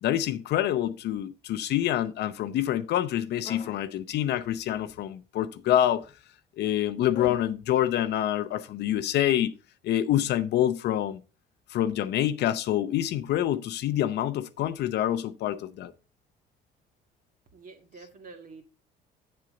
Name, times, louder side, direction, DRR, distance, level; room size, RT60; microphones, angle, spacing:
voice 1, 0.0-6.0 6.6-9.5 9.8-11.2 11.7-15.9, left 12 dB, 70° left, 0.7 m, -26 dB
sound 1, 3.4-3.8 4.4-5.1 5.8-6.1 7.0-7.5, left 7 dB, 30° left, 0.6 m, -43 dB
voice 2, 17.5-18.6, right 4 dB, 50° right, 2.1 m, -47 dB
8.3 x 7.6 x 3.8 m
cardioid pair, 90°, 18 cm